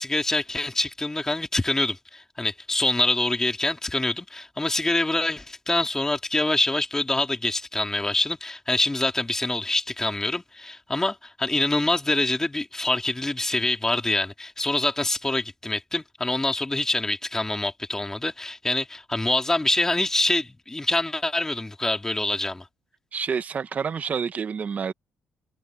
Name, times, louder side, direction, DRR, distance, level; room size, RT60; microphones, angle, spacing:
voice 1, 0.0-22.7, left 2 dB, 10° left, 3.0 m, -25 dB
voice 2, 23.1-24.9, right 6 dB, 40° right, 1.0 m, -28 dB
open air
cardioid pair, 115°, 4 cm